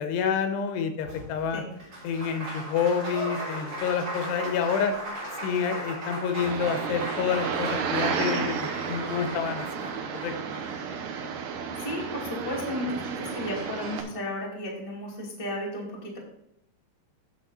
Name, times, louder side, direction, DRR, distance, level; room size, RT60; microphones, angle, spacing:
voice 1, 0.0-1.6 2.0-5.0 5.4-9.9 10.2-10.3, left 6 dB, 85° left, 7 dB, 2.9 m, -28 dB
Applause, 1.0-11.3 12.7-12.8 13.0-14.0, right 1 dB, 35° right, 3.6 m, -38 dB
sound 1, 6.4-14.0, right 6 dB, 85° right, 1.7 m, -32 dB
voice 2, 11.8-16.2, left 1 dB, 10° left, -4 dB, 1.6 m, -33 dB
9.8 x 6.6 x 4.1 m, 0.81 s
omnidirectional pair, 4.9 m